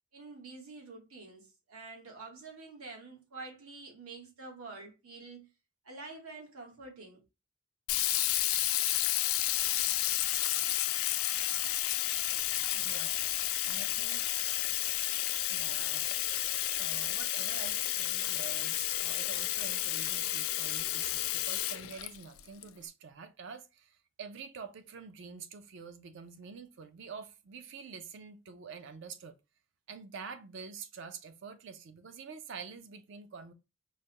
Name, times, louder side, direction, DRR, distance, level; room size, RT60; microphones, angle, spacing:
voice 1, 0.1-5.5 5.8-7.2, right 3 dB, 85° right, 1.3 m, -47 dB
Sink (filling or washing), 7.9-22.6, left 14 dB, 80° left, 0.4 m, -31 dB
voice 2, 12.6-13.3 13.6-14.3 14.7-14.8 15.3-29.4 29.9-33.5, right 5 dB, 60° right, 0.5 m, -47 dB
4.8 x 2.1 x 2.7 m
head